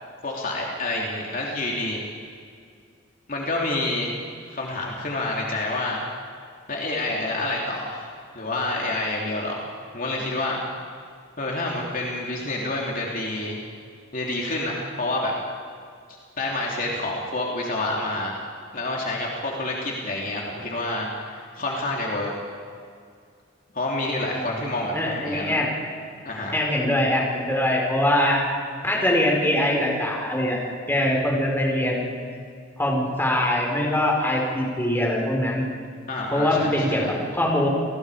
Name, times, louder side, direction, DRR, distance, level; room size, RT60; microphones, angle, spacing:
voice 1, 0.2-2.0 3.3-4.2 4.5-6.1 6.7-9.6 9.9-10.6 11.4-13.6 14.1-15.3 16.4-18.4 18.7-22.3 23.7-25.6 26.2-26.6 36.1-37.1, left 2 dB, 45° left, -2 dB, 3.1 m, -28 dB
voice 2, 24.9-25.7 26.5-28.4 28.8-30.6 30.9-32.0 32.8-35.6 36.3-37.0 37.3-37.7, left 1 dB, 10° left, -2 dB, 4.8 m, -22 dB
29.5 x 20.0 x 5.0 m, 2.2 s
head